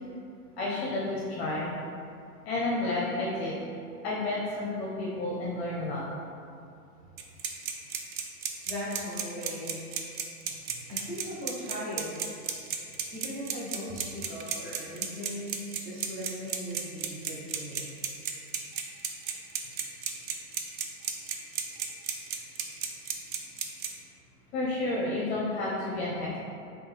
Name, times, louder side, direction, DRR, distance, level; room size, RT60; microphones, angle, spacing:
voice 1, 0.6-1.7 2.4-3.6 4.0-6.0 24.5-26.4, left 2 dB, 45° left, -5 dB, 0.7 m, -31 dB
sound 1, 7.2-23.9, right 8 dB, 65° right, 0.6 m, -33 dB
voice 2, 8.7-9.9 10.9-12.2 13.1-17.9, equal, 15° right, -6 dB, 0.6 m, -38 dB
3.6 x 3.0 x 3.2 m, 2.5 s
hypercardioid pair, 140°, 47 cm